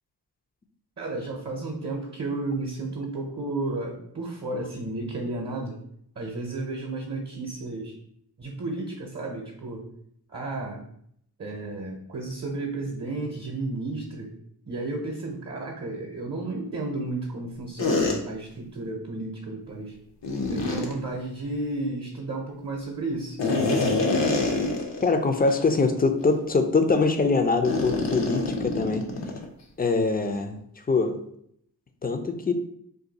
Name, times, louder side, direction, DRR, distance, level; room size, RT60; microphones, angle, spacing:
voice 1, 1.0-5.8 6.2-8.0 8.4-9.8 10.3-10.8 11.4-14.3 14.7-20.0 20.5-24.0, right 2 dB, 35° right, 1 dB, 0.7 m, -33 dB
sound 1, 17.8-18.2 20.2-20.9 23.4-25.1 25.5-25.6 26.2-26.4 27.6-29.4, left 3 dB, 80° left, 0.7 m, -25 dB
voice 2, 25.0-29.0 29.8-30.6 30.9-31.2 32.0-32.5, left 3 dB, 20° left, 7 dB, 0.4 m, -23 dB
2.6 x 2.3 x 3.9 m, 0.71 s
cardioid pair, 40°, 43 cm